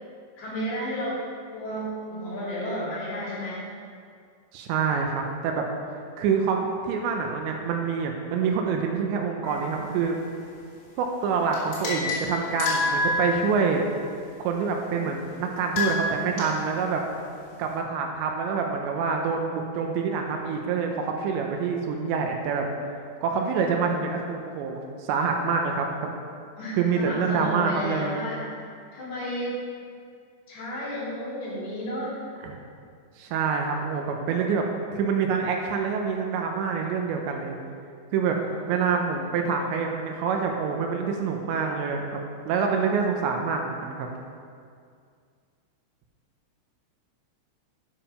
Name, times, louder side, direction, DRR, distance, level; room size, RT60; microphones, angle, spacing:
voice 1, 0.4-1.2 1.5-3.7 26.6-28.4 28.9-29.5 30.5-32.2, equal, 55° left, -7 dB, 4.4 m, -32 dB
voice 2, 4.5-5.7 6.2-10.2 11.0-13.8 14.4-17.0 17.6-22.7 23.2-25.9 26.8-28.3 32.4-32.6 33.2-34.6 34.9-37.6 38.1-38.4 38.7-44.1, right 5 dB, 85° right, 2 dB, 2.6 m, -26 dB
sound 1, 9.4-10.1 11.5-13.8 15.6-16.5, left 3 dB, 70° left, 5.1 m, -28 dB
8.9 x 7.4 x 5.6 m, 2.2 s
omnidirectional pair, 6.0 m